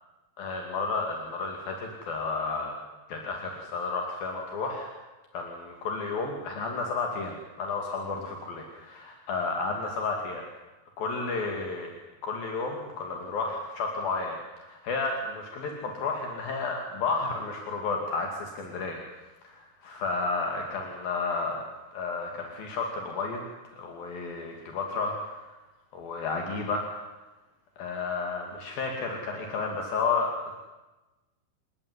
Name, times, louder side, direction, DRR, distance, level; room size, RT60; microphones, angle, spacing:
voice 1, 0.4-2.7 3.1-4.9 5.3-10.5 11.0-11.9 12.2-19.0 19.4-21.6 21.9-23.4 23.8-25.4 25.9-26.9 27.8-30.3, left 4 dB, 70° left, 2 dB, 4.3 m, -32 dB
29.0 x 18.0 x 9.8 m, 1.1 s
omnidirectional pair, 4.4 m